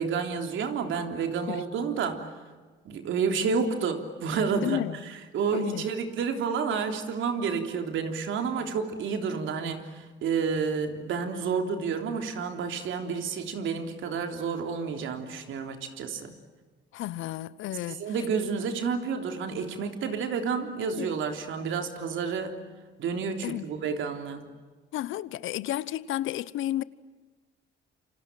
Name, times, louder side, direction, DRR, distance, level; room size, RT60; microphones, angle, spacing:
voice 1, 0.0-2.3 2.9-16.3 17.9-22.6 23.0-24.4, right 5 dB, 75° right, 3.5 m, -30 dB
voice 2, 4.6-5.0 5.5-5.8 16.9-18.0 20.9-21.1 23.4-23.7 24.9-26.8, left 13 dB, 85° left, 0.9 m, -32 dB
28.5 x 26.0 x 7.6 m
cardioid pair, 90°, 20 cm